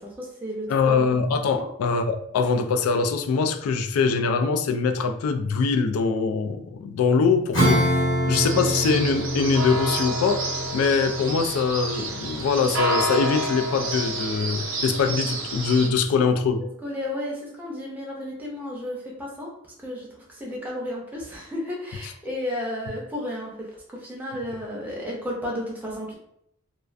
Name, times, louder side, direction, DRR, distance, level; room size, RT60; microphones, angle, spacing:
voice 1, 0.0-1.0 1.6-1.7 16.6-19.5 19.8-26.1, left 1 dB, 10° right, -3 dB, 0.5 m, -33 dB
voice 2, 0.7-7.8 8.3-10.5 10.7-16.6 22.0-22.1, left 5 dB, 90° left, 10 dB, 0.3 m, -23 dB
Acoustic guitar / Strum, 7.5-13.5, equal, 60° left, 0.9 m, -26 dB
sound 1, 8.3-15.9, right 1 dB, 70° right, 0.5 m, -29 dB
2.3 x 2.2 x 2.5 m, 0.73 s
head